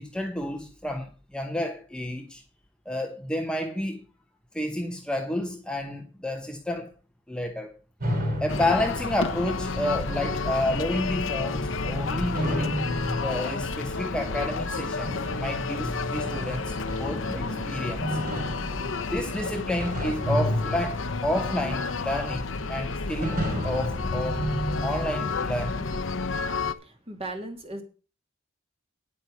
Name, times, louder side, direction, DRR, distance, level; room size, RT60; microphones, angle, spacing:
voice 1, 0.0-2.4 2.8-4.0 4.5-6.9 7.3-7.7 8.4-12.9 13.2-18.4 19.1-24.5 24.8-25.9, left 1 dB, 5° left, 1.0 m, -30 dB
sound 1, 8.0-26.0, equal, 45° right, 4.6 m, -33 dB
sound 2, 8.5-26.7, left 4 dB, 80° left, 0.9 m, -31 dB
voice 2, 26.8-27.8, right 2 dB, 30° right, 2.6 m, -37 dB
9.9 x 8.8 x 5.4 m
head